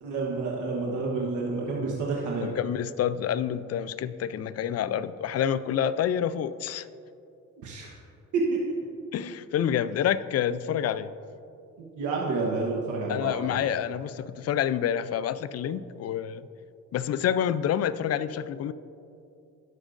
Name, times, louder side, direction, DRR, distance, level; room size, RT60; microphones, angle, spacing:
voice 1, 0.0-2.5 7.6-7.9 8.3-8.6 11.8-13.6, right 3 dB, 80° right, -2 dB, 1.2 m, -29 dB
voice 2, 2.4-6.9 9.1-11.1 13.1-16.5 16.9-18.7, left 9 dB, 55° left, 15 dB, 0.4 m, -28 dB
17.5 x 6.3 x 2.5 m, 2.6 s
cardioid pair, 90°, 30 cm